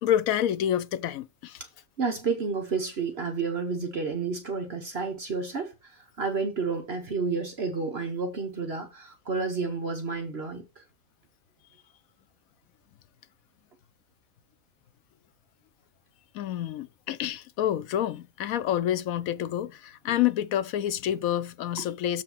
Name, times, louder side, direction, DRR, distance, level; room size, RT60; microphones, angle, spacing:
voice 1, 0.0-1.6 16.3-22.2, left 11 dB, 75° left, 1.0 m, -28 dB
voice 2, 2.0-10.8, right 4 dB, 50° right, 1.1 m, -31 dB
7.1 x 4.6 x 5.6 m
omnidirectional pair, 1.5 m